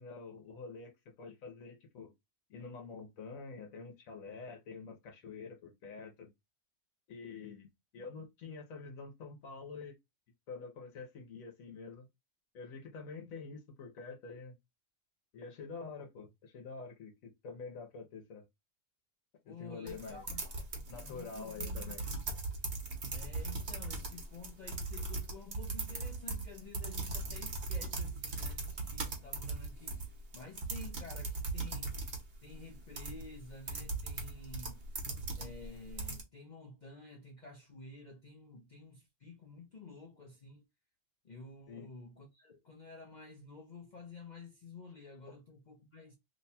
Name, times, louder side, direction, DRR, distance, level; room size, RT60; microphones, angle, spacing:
voice 1, 0.0-2.1 2.5-6.3 7.1-9.9 10.5-12.1 12.5-14.5 15.3-18.4 19.5-20.3 20.9-22.0 41.7-41.9 45.3-45.4, left 4 dB, 90° left, 1.3 m, -47 dB
voice 2, 19.4-20.7 21.0-22.2 23.1-32.0 32.4-34.9 35.3-40.6 41.2-46.2, left 3 dB, 50° left, 0.5 m, -51 dB
sound 1, 19.9-36.2, right 3 dB, 50° right, 1.0 m, -39 dB
3.0 x 2.2 x 4.1 m
omnidirectional pair, 1.4 m